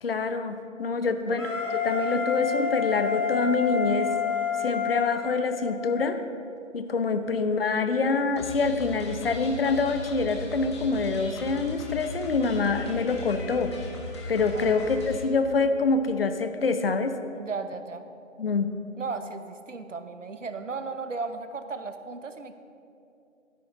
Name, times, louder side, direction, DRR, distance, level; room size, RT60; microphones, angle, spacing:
voice 1, 0.0-4.1 4.6-6.2 6.7-13.8 14.3-17.2 18.4-18.7, left 4 dB, 50° left, 9 dB, 0.7 m, -26 dB
voice 2, 1.0-1.4 14.5-14.8 17.4-18.0 19.0-22.5, right 4 dB, 70° right, 9 dB, 1.0 m, -36 dB
Wind instrument woodwind instrument, 1.4-6.1, left 6 dB, 85° left, 2.1 m, -29 dB
sound 1, 8.4-15.2, left 2 dB, 20° left, 1.6 m, -38 dB
13.0 x 10.0 x 3.8 m, 2.6 s
figure-of-eight pair, 160°, 38 cm